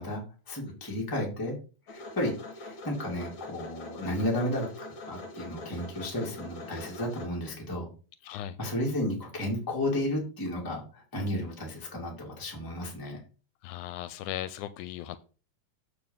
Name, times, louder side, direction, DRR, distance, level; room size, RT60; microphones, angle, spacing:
voice 1, 0.0-1.6 1.9-4.7 5.1-7.9 8.6-13.2, left 1 dB, 10° left, -2 dB, 2.0 m, -33 dB
sound 1, 1.9-7.3, left 2 dB, 45° left, 2.4 m, -43 dB
voice 2, 8.2-8.6 13.6-15.2, left 12 dB, 85° left, 13 dB, 2.0 m, -37 dB
7.9 x 4.6 x 5.5 m, 0.36 s
omnidirectional pair, 3.5 m